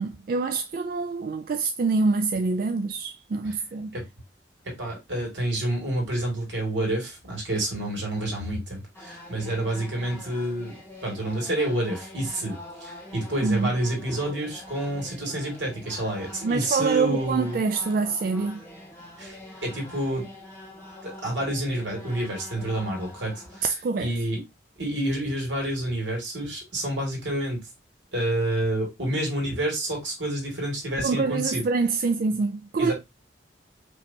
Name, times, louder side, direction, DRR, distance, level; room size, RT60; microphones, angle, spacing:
voice 1, 0.0-3.9 13.4-13.7 16.4-18.6 23.6-24.1 31.0-32.9, right 4 dB, 50° right, 0.3 m, -25 dB
voice 2, 4.6-17.6 19.2-20.3 21.0-23.7 24.0-24.4 24.8-27.6 28.1-31.6 32.8-32.9, right 1 dB, 85° right, 2.6 m, -29 dB
sound 1, 8.9-23.6, left 1 dB, 15° left, 1.2 m, -44 dB
5.1 x 3.2 x 2.8 m
head